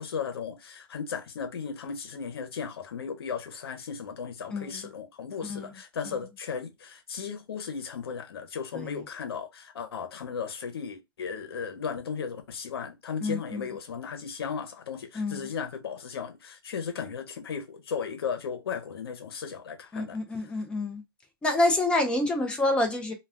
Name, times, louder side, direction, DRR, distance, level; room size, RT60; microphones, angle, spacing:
voice 1, 0.0-20.2, left 6 dB, 90° left, 0.8 m, -36 dB
voice 2, 4.5-4.9 5.4-5.8 6.1-6.2 8.7-8.9 13.2-13.7 15.1-15.5 19.9-21.0 21.4-23.1, left 2 dB, 10° left, 0.5 m, -28 dB
2.3 x 2.3 x 3.4 m
hypercardioid pair, 150°, 13 cm